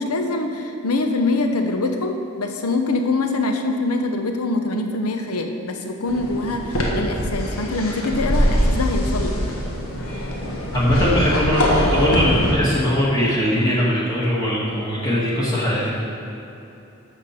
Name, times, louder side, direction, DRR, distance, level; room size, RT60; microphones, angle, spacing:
voice 1, 0.0-9.3, left 2 dB, 85° left, 4 dB, 0.9 m, -24 dB
sound 1, 6.1-12.5, equal, 65° left, 1.6 m, -23 dB
voice 2, 10.7-15.9, equal, 20° left, -7 dB, 1.5 m, -20 dB
12.5 x 7.1 x 4.3 m, 2.9 s
head